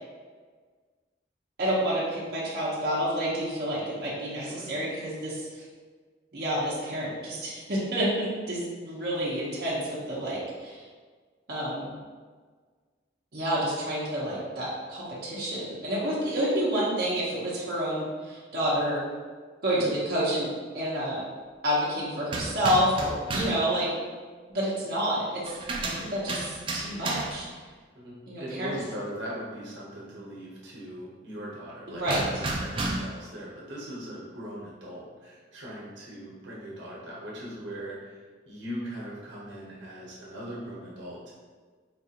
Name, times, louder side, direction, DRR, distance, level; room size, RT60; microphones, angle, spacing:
voice 1, 1.6-5.6 6.3-10.8 11.5-11.9 13.3-19.0 19.6-20.5 20.7-21.2 21.6-23.9 24.5-25.5 25.8-27.5 28.3-28.7 31.9-32.2, equal, 55° right, -8 dB, 0.8 m, -29 dB
voice 2, 4.4-4.7 19.7-19.9 27.9-41.3, equal, 85° right, -6 dB, 0.9 m, -40 dB
sound 1, 22.3-23.7 25.5-27.5 32.1-33.2, right 2 dB, 30° right, 0.3 m, -32 dB
3.9 x 2.4 x 2.8 m, 1.5 s
head